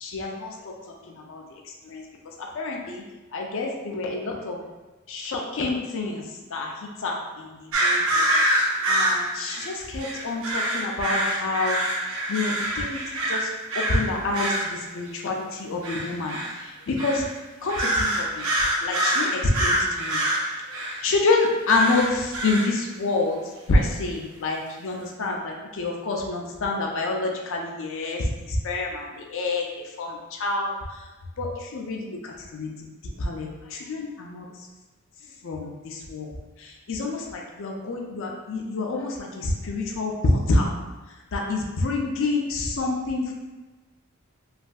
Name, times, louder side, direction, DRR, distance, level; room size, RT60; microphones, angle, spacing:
voice 1, 0.0-1.4 1.8-2.0 2.4-3.0 3.3-4.6 5.1-6.2 6.5-8.4 8.9-11.8 12.3-13.0 13.3-13.5 13.8-17.2 17.6-18.5 18.8-20.2 21.0-23.4 23.7-29.7 30.0-30.7 31.4-32.7 33.2-34.5 35.4-36.3 36.6-40.7 41.3-43.3, left 2 dB, 65° left, 0 dB, 0.5 m, -27 dB
sound 1, 7.7-14.0 14.3-14.7 15.8-16.6 17.0-17.3 17.7-21.0 21.7-22.7, right 1 dB, 70° right, 0.6 m, -25 dB
3.2 x 2.6 x 2.3 m, 1.2 s
head